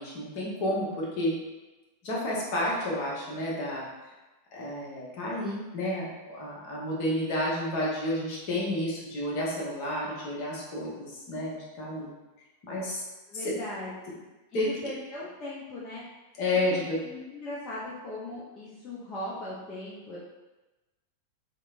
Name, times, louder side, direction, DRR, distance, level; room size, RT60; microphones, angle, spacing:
voice 1, 0.0-1.3 2.0-3.8 4.5-12.1 12.7-13.0 13.3-13.4 14.5-14.7 16.4-17.0, left 1 dB, 45° left, -5 dB, 0.9 m, -30 dB
voice 2, 13.3-14.2 14.5-16.0 16.7-20.2, left 1 dB, 25° left, -8 dB, 0.5 m, -39 dB
2.9 x 2.1 x 2.4 m, 1.1 s
figure-of-eight pair, 90°, 0 cm